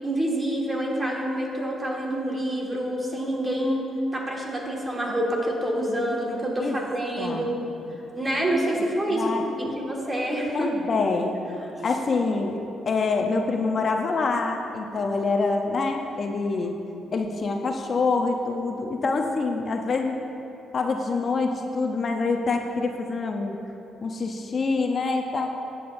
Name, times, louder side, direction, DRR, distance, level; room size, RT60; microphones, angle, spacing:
voice 1, 0.0-3.8 4.1-7.5 8.1-10.7 11.8-11.9, right 1 dB, 20° right, -2 dB, 1.8 m, -27 dB
voice 2, 9.1-9.7 10.5-11.5 11.8-12.6 12.9-16.8 17.1-20.2 20.7-23.6 24.0-25.5, left 3 dB, 45° left, 3 dB, 0.6 m, -26 dB
14.5 x 8.7 x 2.6 m, 3.0 s
cardioid pair, 90°, 0 cm